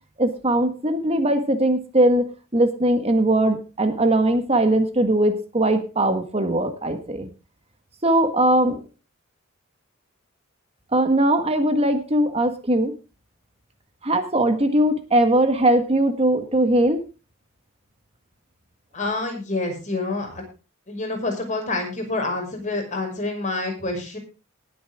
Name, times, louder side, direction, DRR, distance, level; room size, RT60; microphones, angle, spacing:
voice 1, 0.2-2.2 2.5-7.3 8.0-8.8 10.9-12.9 14.0-17.0, right 1 dB, 30° right, 8 dB, 1.7 m, -20 dB
voice 2, 18.9-20.4 20.9-24.2, left 2 dB, 35° left, 2 dB, 5.8 m, -27 dB
19.5 x 8.6 x 3.6 m, 0.32 s
head